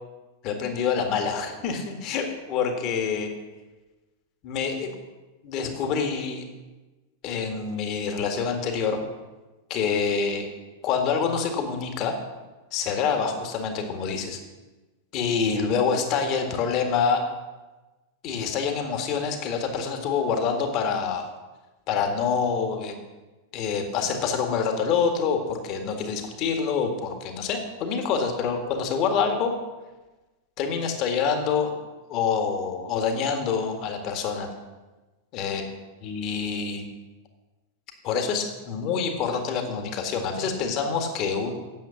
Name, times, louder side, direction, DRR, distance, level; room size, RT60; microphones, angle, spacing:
voice 1, 0.4-3.3 4.4-4.9 5.4-6.4 7.2-9.0 9.7-10.5 10.8-12.2 12.7-14.4 15.1-17.2 18.2-21.3 21.9-22.9 23.5-29.5 30.6-31.7 32.1-34.5 35.3-35.6 36.0-36.9 38.0-41.5, left 6 dB, 40° left, 4 dB, 1.8 m, -26 dB
9.4 x 7.4 x 7.2 m, 1.2 s
figure-of-eight pair, 90°, 0 cm